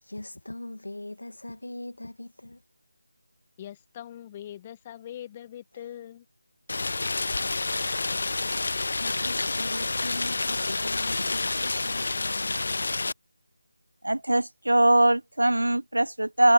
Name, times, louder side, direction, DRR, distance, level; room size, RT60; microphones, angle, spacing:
voice 1, 0.0-2.6 5.7-5.9 8.6-12.8, left 1 dB, 70° left, 2.5 m, -40 dB
voice 2, 3.6-6.2, left 11 dB, 20° left, 1.5 m, -42 dB
Rain, 6.7-13.1, left 3 dB, 50° left, 0.7 m, -29 dB
voice 3, 14.0-16.5, right 1 dB, 75° right, 1.1 m, -21 dB
figure-of-eight pair, 160°, 0 cm